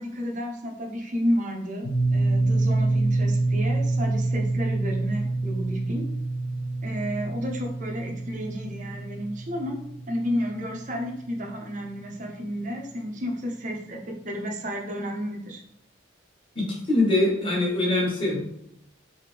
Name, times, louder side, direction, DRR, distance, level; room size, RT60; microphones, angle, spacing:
voice 1, 0.0-6.0 6.8-9.8 10.1-15.6, equal, 40° right, 1 dB, 0.7 m, -31 dB
sound 1, 1.8-11.7, right 2 dB, 70° left, 1.0 m, -27 dB
voice 2, 16.5-18.4, left 2 dB, 25° left, -4 dB, 1.3 m, -23 dB
3.8 x 3.4 x 3.3 m, 0.75 s
head